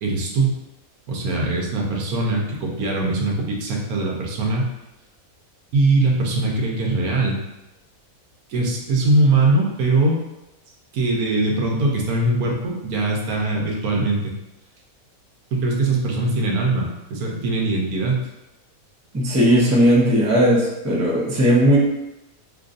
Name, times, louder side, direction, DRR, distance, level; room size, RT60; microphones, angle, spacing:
voice 1, 0.0-0.6 1.1-4.7 5.7-7.4 8.5-10.2 10.9-14.3 15.5-18.3, right 2 dB, 80° right, -1 dB, 1.2 m, -21 dB
voice 2, 19.1-21.8, equal, 20° right, -5 dB, 0.4 m, -17 dB
3.8 x 3.0 x 2.5 m, 0.99 s
omnidirectional pair, 1.5 m